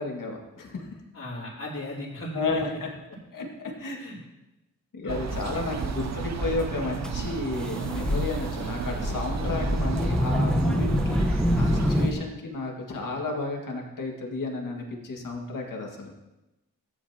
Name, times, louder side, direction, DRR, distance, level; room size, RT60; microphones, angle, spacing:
voice 1, 0.0-1.0 2.3-2.9 3.3-4.0 4.9-16.1, left 3 dB, 85° left, 0 dB, 2.0 m, -32 dB
voice 2, 1.1-2.8 4.0-4.2 5.0-5.3 6.1-6.7, left 1 dB, 50° left, -9 dB, 3.5 m, -37 dB
sound 1, 5.1-12.1, right 6 dB, 60° right, 0.6 m, -34 dB
sound 2, 5.3-12.1, equal, ahead, 1.0 m, -27 dB
14.5 x 9.9 x 2.9 m, 0.98 s
cardioid pair, 60°, 32 cm